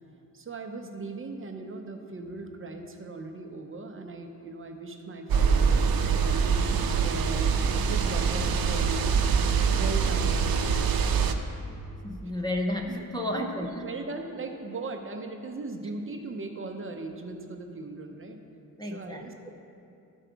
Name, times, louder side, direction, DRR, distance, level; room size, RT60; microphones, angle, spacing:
voice 1, 0.3-5.7 6.2-9.2 9.7-10.4 12.9-13.0 13.3-13.5 13.8-18.4 18.9-19.5, right 3 dB, 35° right, 4 dB, 0.6 m, -38 dB
sound 1, 5.3-11.3, right 5 dB, 85° right, 0.6 m, -24 dB
voice 2, 12.0-13.9 18.8-19.5, left 1 dB, 15° left, -1 dB, 0.4 m, -32 dB
12.5 x 4.5 x 5.0 m, 2.6 s
wide cardioid pair, 165°, 35 cm